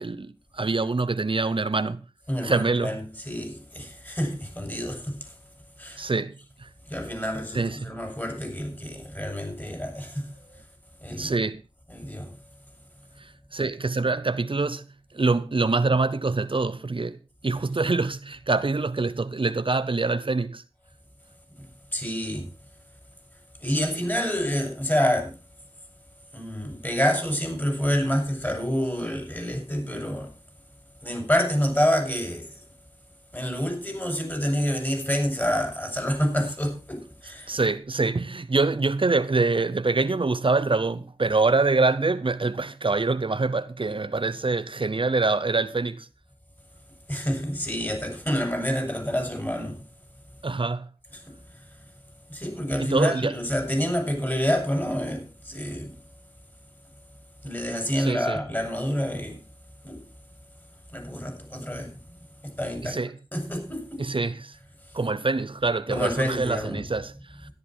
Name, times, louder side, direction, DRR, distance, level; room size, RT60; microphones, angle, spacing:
voice 1, 0.0-2.0 2.4-3.0 6.0-6.3 6.6-6.7 7.5-7.9 11.2-11.6 13.5-14.9 15.1-17.2 17.4-20.6 37.5-46.1 50.4-50.9 52.8-53.3 58.0-58.4 62.8-63.2 64.0-64.6 64.9-67.1, right 3 dB, 65° right, 0.7 m, -25 dB
voice 2, 2.3-5.3 5.8-6.0 6.9-10.3 11.0-11.3 11.9-12.3 21.6-22.5 23.6-25.3 26.3-30.3 31.0-32.6 33.3-37.5 47.1-49.8 51.1-51.2 52.3-55.9 57.4-59.4 59.8-60.0 60.9-62.0 62.4-63.0 63.3-64.0 65.9-66.8, equal, 20° left, 6.1 m, -28 dB
13.5 x 11.0 x 4.4 m
wide cardioid pair, 45°, 10 cm